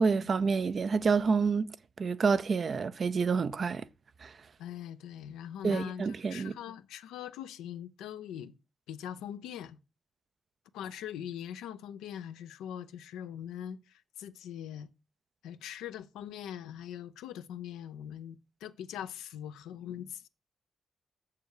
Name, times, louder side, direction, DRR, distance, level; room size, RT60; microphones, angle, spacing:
voice 1, 0.0-3.9 4.2-4.3 5.6-6.6, right 5 dB, 55° right, 0.6 m, -28 dB
voice 2, 4.6-8.5 8.9-9.8 10.7-14.9 15.4-20.3, left 9 dB, 90° left, 0.6 m, -42 dB
6.8 x 6.7 x 4.8 m
supercardioid pair, 55°, 0 cm